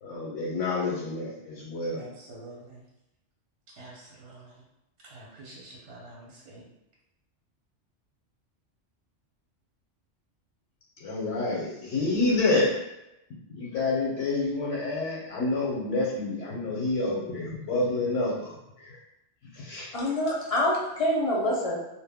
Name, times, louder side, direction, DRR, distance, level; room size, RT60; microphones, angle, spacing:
voice 1, 0.0-2.1 11.0-12.7 13.5-18.9 19.5-19.9, left 2 dB, 75° left, -4 dB, 0.9 m, -28 dB
voice 2, 1.9-2.8 3.8-4.6 5.0-6.6, right 2 dB, 65° right, -4 dB, 0.8 m, -47 dB
voice 3, 19.9-21.8, left 1 dB, 40° left, -3 dB, 0.5 m, -26 dB
2.3 x 2.0 x 3.3 m, 0.89 s
omnidirectional pair, 1.2 m